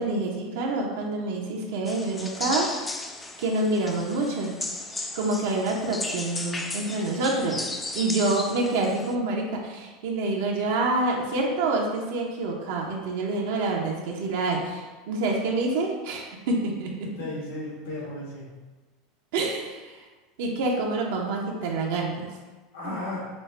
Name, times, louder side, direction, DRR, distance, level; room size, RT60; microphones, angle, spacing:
voice 1, 0.0-2.7 3.4-4.6 5.1-7.7 7.9-17.1 19.3-20.0 20.4-22.3 22.8-22.9, right 2 dB, 75° right, -1 dB, 0.7 m, -27 dB
sound 1, 1.9-9.1, left 2 dB, 15° left, 0.3 m, -35 dB
voice 2, 17.0-18.5 22.7-23.3, left 1 dB, 85° left, -6 dB, 1.4 m, -35 dB
5.2 x 2.1 x 3.2 m, 1.3 s
supercardioid pair, 125°, 0 cm